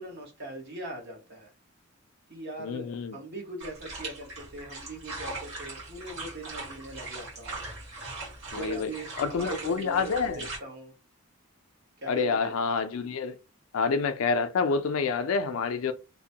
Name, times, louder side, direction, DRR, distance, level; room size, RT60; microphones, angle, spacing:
voice 1, 0.0-1.5 2.3-7.6 8.5-10.9 12.0-12.5, right 1 dB, 50° right, 1.0 m, -41 dB
voice 2, 2.6-3.2 8.5-8.9 9.2-10.5 12.1-13.4 13.7-15.9, left 5 dB, 70° left, 0.4 m, -28 dB
sound 1, 3.6-10.6, right 2 dB, 75° right, 1.4 m, -40 dB
2.9 x 2.1 x 2.7 m
head